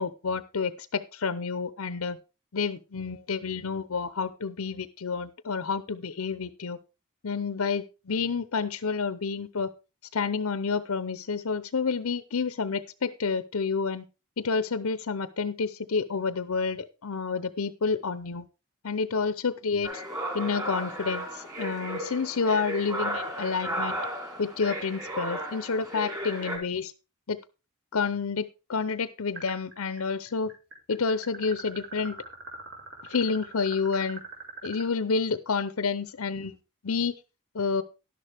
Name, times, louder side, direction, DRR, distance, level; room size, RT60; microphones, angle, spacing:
voice 1, 0.0-2.2 2.5-6.8 7.2-9.7 10.1-14.0 14.4-18.5 18.8-20.0 20.3-24.0 24.4-26.9 27.3-27.4 27.9-30.5 30.9-32.2 33.0-34.2 34.6-36.6 36.8-37.1 37.5-37.8, left 5 dB, 75° left, 15 dB, 0.7 m, -29 dB
sound 1, 19.8-26.6, right 1 dB, 15° right, 3.9 m, -34 dB
sound 2, 29.3-30.0 30.3-34.8, right 3 dB, 60° right, 4.4 m, -42 dB
11.5 x 11.0 x 3.4 m, 0.30 s
head